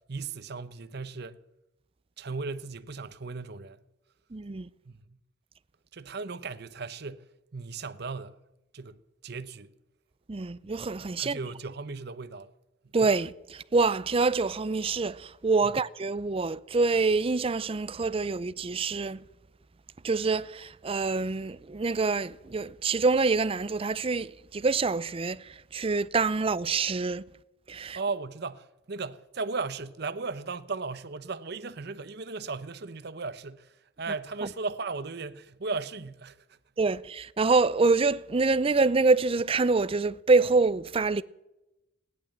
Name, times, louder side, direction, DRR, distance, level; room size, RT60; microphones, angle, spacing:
voice 1, 0.1-1.4 2.2-3.8 4.8-5.2 5.9-8.4 8.7-9.7 11.2-12.5 15.6-15.8 27.9-36.6, right 4 dB, 60° right, 0.8 m, -36 dB
voice 2, 4.3-4.7 10.3-11.4 12.9-19.2 20.0-25.4 25.7-27.2 27.7-28.0 36.8-41.2, right 3 dB, 30° right, 0.5 m, -26 dB
16.5 x 11.0 x 7.7 m
head